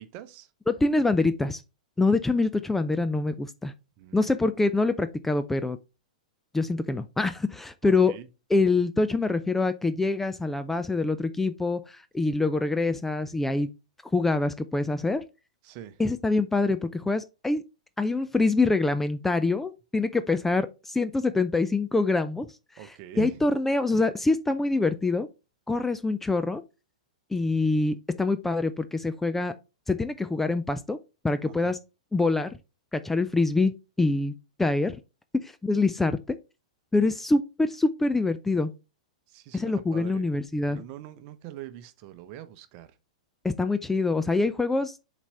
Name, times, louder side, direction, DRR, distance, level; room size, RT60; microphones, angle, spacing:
voice 1, 0.0-0.5 4.0-4.3 7.8-8.3 15.6-16.0 22.8-23.4 31.5-31.7 39.3-40.3 40.7-42.9, right 12 dB, 40° right, 0.8 m, -43 dB
voice 2, 0.7-1.6 2.0-3.7 4.1-5.8 6.5-8.2 8.5-13.7 14.1-15.2 16.0-17.6 18.0-22.5 22.8-25.3 25.7-26.6 27.3-29.5 29.9-31.0 31.2-31.8 32.1-32.6 32.9-33.7 34.0-34.3 34.6-35.0 35.4-36.4 36.9-38.7 39.5-40.8 43.4-45.0, left 3 dB, 5° left, 0.4 m, -25 dB
7.1 x 4.1 x 3.4 m
figure-of-eight pair, 105°, 4 cm